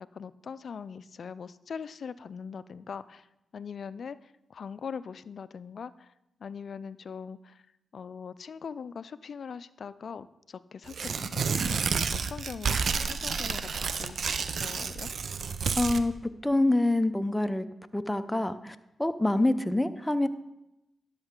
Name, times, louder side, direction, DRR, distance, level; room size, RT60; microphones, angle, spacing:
voice 1, 0.1-3.3 3.5-6.1 6.4-7.6 7.9-15.1, left 6 dB, 65° left, 16 dB, 0.3 m, -41 dB
Tearing, 10.9-16.0, right 5 dB, 65° right, 0.5 m, -30 dB
voice 2, 15.8-17.7 17.9-20.3, left 2 dB, 10° left, 10 dB, 0.6 m, -26 dB
11.5 x 6.4 x 3.7 m, 0.91 s
supercardioid pair, 50°, 0 cm